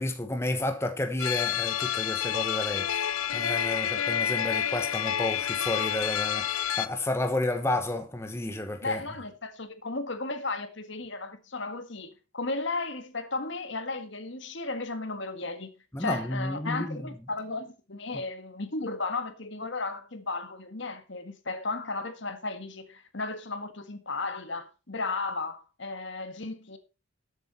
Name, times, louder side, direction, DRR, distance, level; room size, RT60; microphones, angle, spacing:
voice 1, 0.0-9.0 15.9-17.1, left 1 dB, 10° left, 1.1 m, -31 dB
sound 1, 1.2-6.9, left 9 dB, 90° left, 0.7 m, -29 dB
voice 2, 8.8-15.7 16.0-26.8, left 3 dB, 60° left, 1.7 m, -34 dB
13.0 x 8.2 x 4.2 m
head